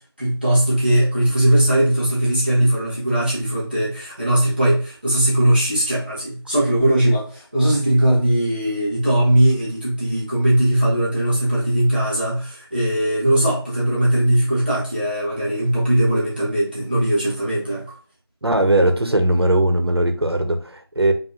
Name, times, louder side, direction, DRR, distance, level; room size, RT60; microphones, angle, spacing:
voice 1, 0.2-18.0, right 1 dB, 20° right, -7 dB, 1.0 m, -19 dB
voice 2, 18.4-21.1, right 1 dB, 75° right, 5 dB, 1.0 m, -19 dB
5.3 x 2.7 x 2.8 m, 0.39 s
figure-of-eight pair, 175°, 13 cm